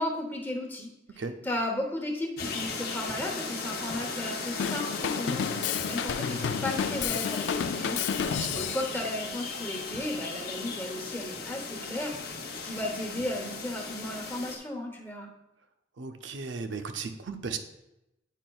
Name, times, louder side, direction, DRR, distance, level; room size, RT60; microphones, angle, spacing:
voice 1, 0.0-8.0 8.5-15.3, left 1 dB, 10° left, 0 dB, 0.9 m, -35 dB
sound 1, 2.4-14.6, left 4 dB, 55° left, 0.7 m, -37 dB
Drum kit / Drum, 4.6-9.0, left 7 dB, 70° left, 0.3 m, -31 dB
voice 2, 8.2-8.7 16.0-17.6, right 4 dB, 85° right, 7 dB, 0.6 m, -36 dB
9.1 x 5.3 x 2.3 m, 0.90 s
head